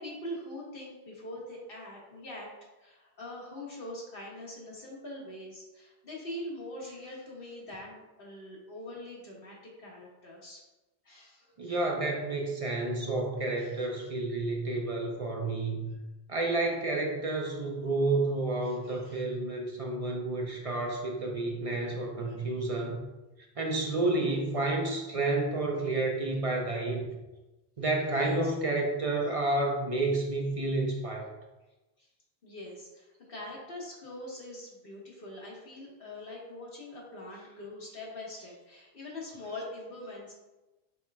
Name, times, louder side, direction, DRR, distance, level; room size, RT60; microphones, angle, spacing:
voice 1, 0.0-2.5 2.8-10.6 11.0-11.8 13.6-14.1 18.6-19.2 22.2-22.3 28.2-28.5 32.0-32.1 32.4-40.3, left 1 dB, 60° left, -3 dB, 1.2 m, -43 dB
voice 2, 11.6-15.9 16.3-23.0 23.6-27.1 27.8-31.3, right 2 dB, 40° right, 1 dB, 0.6 m, -30 dB
5.5 x 4.2 x 2.2 m, 1.1 s
omnidirectional pair, 1.1 m